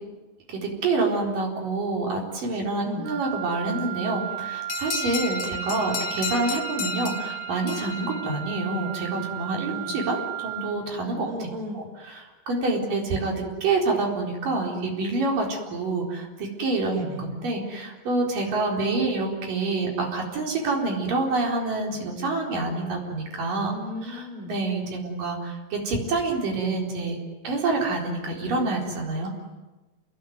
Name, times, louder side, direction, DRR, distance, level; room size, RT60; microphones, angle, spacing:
voice 1, 0.5-11.3 11.7-23.7 24.0-27.2 27.4-29.3, right 3 dB, 70° right, 0 dB, 5.9 m, -27 dB
Wind instrument woodwind instrument, 3.0-10.8, right 14 dB, 90° right, 4.1 m, -35 dB
sound 1, 4.7-8.9, left 8 dB, 65° left, 2.7 m, -34 dB
voice 2, 11.3-11.8 12.7-12.9 16.9-17.2 23.7-24.6 29.2-29.3, left 1 dB, 35° right, 4 dB, 4.8 m, -36 dB
30.0 x 21.0 x 9.5 m, 1.1 s
omnidirectional pair, 4.0 m